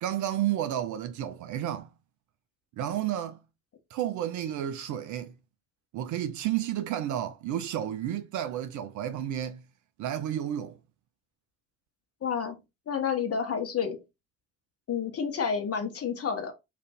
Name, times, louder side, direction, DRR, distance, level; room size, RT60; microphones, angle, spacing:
voice 1, 0.0-1.9 2.7-3.4 3.9-5.3 5.9-9.6 10.0-10.8, right 11 dB, 45° right, 0.4 m, -31 dB
voice 2, 12.2-12.6 12.9-14.0 14.9-16.5, left 6 dB, 35° left, 0.9 m, -29 dB
2.5 x 2.4 x 4.0 m
figure-of-eight pair, 50°, 44 cm